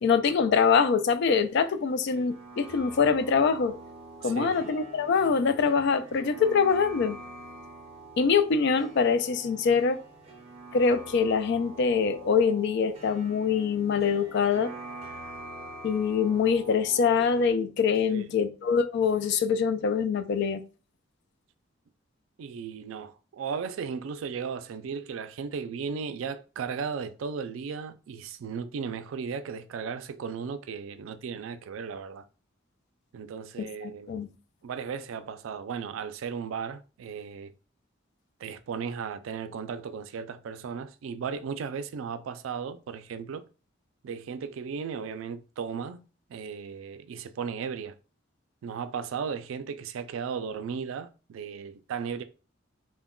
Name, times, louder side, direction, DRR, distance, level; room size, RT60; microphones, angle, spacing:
voice 1, 0.0-3.8 4.2-7.2 8.2-10.0 10.7-14.7 15.8-20.6 33.8-34.3, left 5 dB, 60° left, 0.3 m, -24 dB
sound 1, 1.3-17.5, right 1 dB, 30° right, 0.5 m, -45 dB
voice 2, 4.2-4.6 18.1-18.2 22.4-32.2 33.1-34.1 34.6-37.5 38.4-43.4 44.0-46.0 46.3-48.0 48.6-52.2, right 6 dB, 90° right, 0.3 m, -36 dB
2.2 x 2.1 x 3.6 m
head